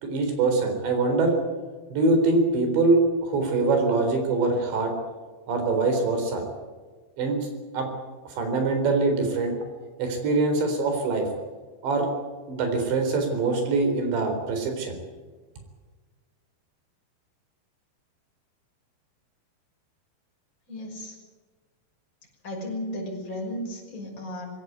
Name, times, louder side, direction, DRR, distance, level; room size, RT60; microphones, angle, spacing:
voice 1, 0.0-1.3 1.9-4.9 5.5-6.4 7.2-7.5 7.7-7.9 8.4-9.5 10.0-11.3 11.8-12.1 12.5-14.9, right 3 dB, 80° right, 5 dB, 6.3 m, -23 dB
voice 2, 20.7-21.1 22.4-24.5, left 1 dB, 20° left, -1 dB, 6.3 m, -34 dB
21.0 x 16.5 x 9.5 m, 1.3 s
omnidirectional pair, 5.1 m